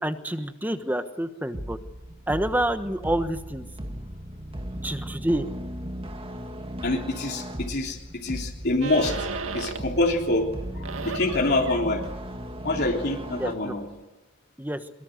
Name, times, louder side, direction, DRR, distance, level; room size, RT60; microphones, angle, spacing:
voice 1, 0.0-1.8 2.3-3.7 4.8-5.5 13.4-13.7 14.6-14.8, right 1 dB, 10° right, 9 dB, 1.2 m, -28 dB
sound 1, 1.5-13.5, equal, 25° right, 1.9 m, -37 dB
voice 2, 6.8-9.3 9.5-10.5 10.7-12.0 12.6-13.8, left 2 dB, 50° left, 0 dB, 3.3 m, -26 dB
sound 2, 8.8-10.0 10.4-14.0, right 4 dB, 70° right, 1.9 m, -37 dB
23.5 x 22.5 x 7.9 m, 1.2 s
head